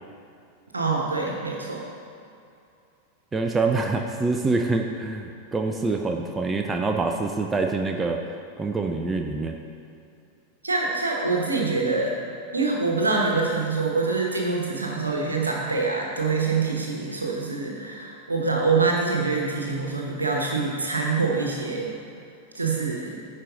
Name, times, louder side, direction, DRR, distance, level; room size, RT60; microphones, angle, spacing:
voice 1, 0.7-1.9 10.6-12.1 12.5-21.9 22.5-23.2, right 4 dB, 80° right, -1 dB, 1.1 m, -25 dB
voice 2, 3.3-9.6, right 3 dB, 15° right, 3 dB, 0.5 m, -26 dB
10.0 x 4.7 x 3.8 m, 2.6 s
figure-of-eight pair, 90°, 0 cm